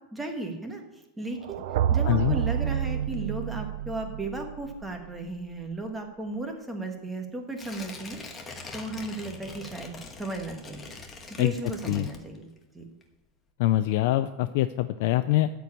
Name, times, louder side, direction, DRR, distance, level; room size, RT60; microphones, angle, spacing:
voice 1, 0.1-0.8 1.2-1.6 1.9-8.5 8.7-10.9 11.3-12.5 12.7-12.9, right 2 dB, 5° right, 3 dB, 1.5 m, -35 dB
sound 1, 1.4-5.4, right 9 dB, 70° right, 0.5 m, -29 dB
voice 2, 2.0-2.4 11.4-11.5 11.9-12.1 13.6-15.5, left 15 dB, 55° left, 9 dB, 0.4 m, -24 dB
Tearing, 7.5-12.7 13.0-13.1, left 3 dB, 15° left, 1.3 m, -43 dB
13.5 x 4.6 x 8.6 m, 0.97 s
supercardioid pair, 165°, 0 cm